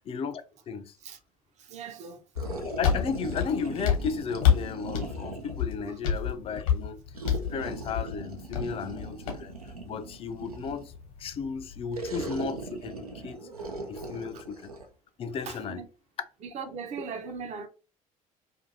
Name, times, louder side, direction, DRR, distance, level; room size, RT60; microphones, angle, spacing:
voice 1, 0.1-1.0 2.6-7.0 7.4-10.9 11.2-13.5 13.9-14.7 15.2-15.8, left 5 dB, 30° left, 0.4 m, -34 dB
voice 2, 1.6-2.2 5.8-6.0 7.3-7.4 8.6-8.7 15.5-15.8 16.4-17.7, right 5 dB, 40° right, 0.6 m, -39 dB
sound 1, 2.4-12.2, left 8 dB, 70° left, 1.0 m, -30 dB
sound 2, 2.4-5.7 7.1-11.0 11.9-14.9, right 3 dB, 85° right, 0.4 m, -39 dB
2.6 x 2.5 x 2.6 m
figure-of-eight pair, 55°, 19 cm